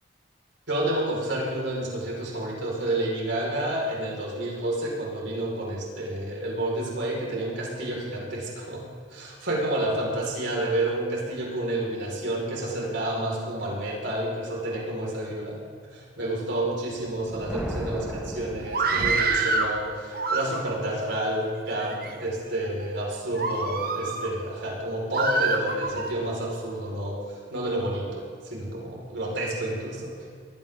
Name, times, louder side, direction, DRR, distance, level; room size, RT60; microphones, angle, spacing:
voice 1, 0.7-15.6 15.9-30.2, right 1 dB, 70° right, -3 dB, 5.2 m, -30 dB
Thunder, 17.0-19.5, equal, 5° right, 1.8 m, -36 dB
Screaming, 18.6-19.7 20.1-20.9 21.6-22.1 22.7-22.8 23.3-24.3 25.1-26.1, right 3 dB, 50° right, 1.3 m, -26 dB
21.5 x 16.0 x 3.8 m, 2.1 s
head